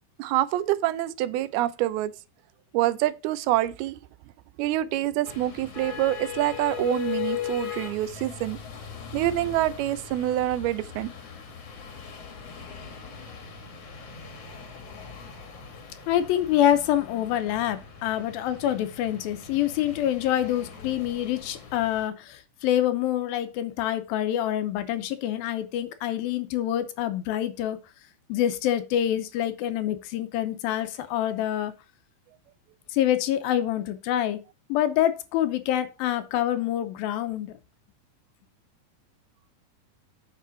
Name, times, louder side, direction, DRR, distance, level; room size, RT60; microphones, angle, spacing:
voice 1, 0.2-2.1 2.7-4.0 4.6-8.6 9.1-11.1, right 14 dB, 90° right, 2.6 m, -26 dB
sound 1, 5.3-22.1, left 8 dB, 55° left, 2.0 m, -39 dB
voice 2, 16.1-27.8 28.3-31.7 32.9-34.4 34.7-37.5, left 11 dB, 80° left, 2.5 m, -26 dB
8.4 x 6.0 x 4.0 m
omnidirectional pair, 4.3 m